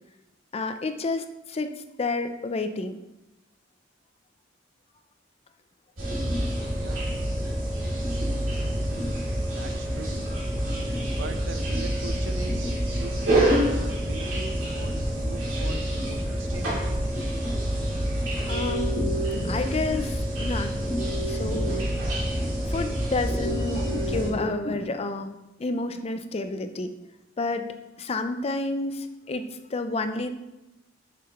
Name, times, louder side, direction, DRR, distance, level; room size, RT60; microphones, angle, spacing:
voice 1, 0.5-1.7 2.0-3.0 18.5-19.1 19.5-20.7 21.3-21.9 22.7-26.9 27.4-30.3, left 3 dB, 30° left, 9 dB, 0.4 m, -30 dB
sound 1, 6.0-24.3, equal, 90° right, 2.6 m, -27 dB
voice 2, 6.7-7.1 9.5-10.5 10.9-17.0, right 3 dB, 65° right, 8 dB, 0.6 m, -40 dB
sound 2, 18.5-24.8, right 1 dB, 60° left, 1.4 m, -34 dB
7.2 x 6.1 x 3.0 m, 0.98 s
head